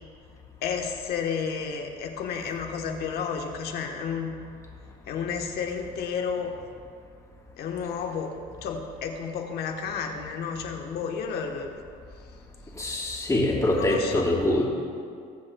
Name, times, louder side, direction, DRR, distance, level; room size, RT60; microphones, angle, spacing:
voice 1, 0.6-4.3 5.1-6.6 7.6-8.3 8.6-11.8 13.7-14.2, left 6 dB, 70° left, 2 dB, 1.2 m, -31 dB
voice 2, 12.7-14.6, left 1 dB, 20° left, -4 dB, 2.5 m, -24 dB
21.5 x 7.3 x 2.3 m, 2.3 s
cardioid pair, 110°, 17 cm